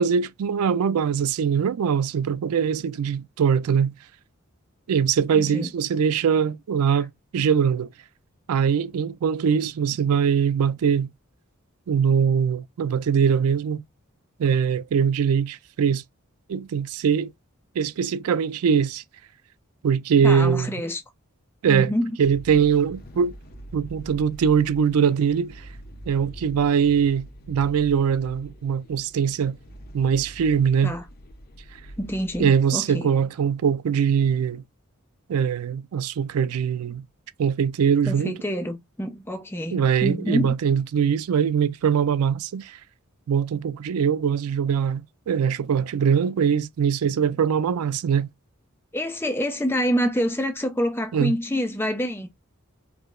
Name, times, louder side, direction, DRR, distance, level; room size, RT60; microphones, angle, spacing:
voice 1, 0.0-3.9 4.9-7.9 8.5-11.1 11.9-13.8 14.4-16.0 16.5-17.3 17.8-19.0 19.8-20.7 21.6-21.9 22.2-23.3 23.7-25.6 26.1-29.6 29.9-30.9 32.4-34.6 35.3-37.0 37.4-38.3 39.7-42.8 43.3-45.0 45.3-48.3 51.1-51.3, right 7 dB, 85° right, 0.4 m, -22 dB
voice 2, 5.3-5.7 6.9-7.1 20.2-21.0 21.7-22.2 30.8-31.1 32.0-33.2 38.1-40.6 48.9-52.3, equal, 10° left, 0.6 m, -27 dB
sound 1, 22.2-32.4, equal, 45° left, 0.8 m, -44 dB
4.7 x 2.7 x 2.5 m
head